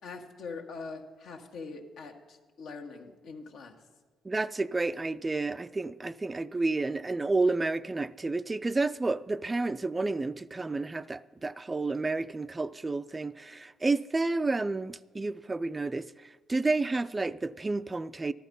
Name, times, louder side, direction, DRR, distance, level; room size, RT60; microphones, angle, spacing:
voice 1, 0.0-3.7, left 4 dB, 75° left, 1.6 m, -43 dB
voice 2, 4.2-18.3, right 3 dB, 20° right, 0.4 m, -30 dB
14.0 x 12.0 x 5.4 m
cardioid pair, 90°, 0 cm